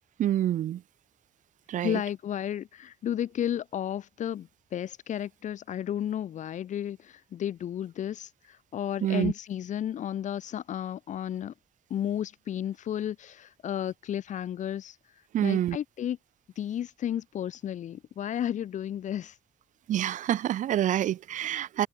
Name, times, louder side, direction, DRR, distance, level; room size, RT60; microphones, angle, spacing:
voice 1, 0.2-0.8 1.7-2.0 9.0-9.3 15.3-15.8 19.9-21.9, right 12 dB, 85° right, 7.3 m, -27 dB
voice 2, 1.8-11.5 11.9-15.0 15.4-16.2 16.6-19.4, left 10 dB, 75° left, 6.4 m, -33 dB
cardioid pair, 100°, 13 cm